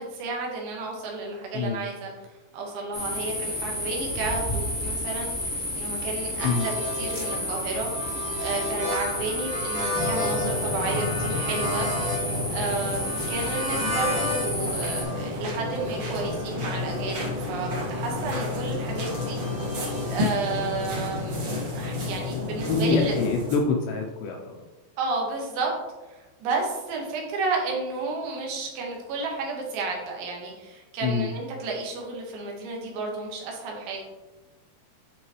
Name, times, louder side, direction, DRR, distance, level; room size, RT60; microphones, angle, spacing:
voice 1, 0.0-2.1 2.5-19.4 19.8-23.2 25.0-25.7 26.1-34.0, right 3 dB, 80° right, -1 dB, 3.7 m, -32 dB
sound 1, 2.9-15.0, equal, 45° left, 0.6 m, -31 dB
sound 2, 6.4-14.5 14.8-20.2, left 2 dB, 25° right, 0.6 m, -34 dB
sound 3, 9.9-23.6, left 2 dB, 50° right, 1.6 m, -31 dB
voice 2, 22.7-24.6 31.0-31.3, left 4 dB, 80° left, 2 dB, 2.6 m, -26 dB
11.5 x 4.6 x 3.2 m, 1.1 s
omnidirectional pair, 5.6 m